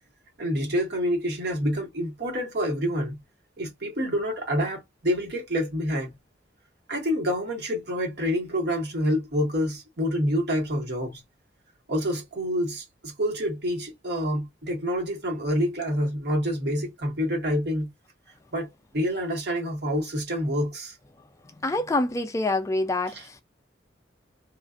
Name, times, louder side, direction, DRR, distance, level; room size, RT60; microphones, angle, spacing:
voice 1, 0.4-3.2 3.6-6.2 6.9-11.2 11.9-17.9 18.5-21.0 23.1-23.2, equal, 60° right, 1.2 m, -27 dB
voice 2, 21.6-23.4, left 2 dB, 15° left, 0.3 m, -26 dB
2.5 x 2.4 x 2.3 m
head